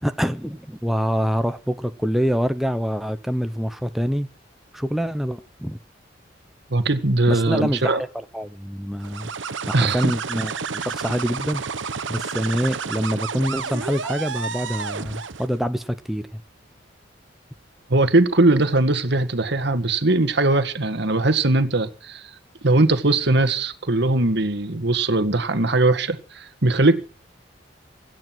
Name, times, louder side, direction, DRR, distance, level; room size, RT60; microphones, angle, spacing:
voice 1, 0.0-4.3 4.7-5.8 7.3-9.3 9.7-11.6 12.1-16.4, equal, ahead, 0.7 m, -25 dB
voice 2, 6.7-8.0 9.7-10.1 17.9-22.2 22.6-26.9, right 2 dB, 65° right, 1.8 m, -20 dB
sound 1, 9.0-15.6, right 5 dB, 85° right, 1.0 m, -30 dB
16.5 x 12.5 x 6.1 m
head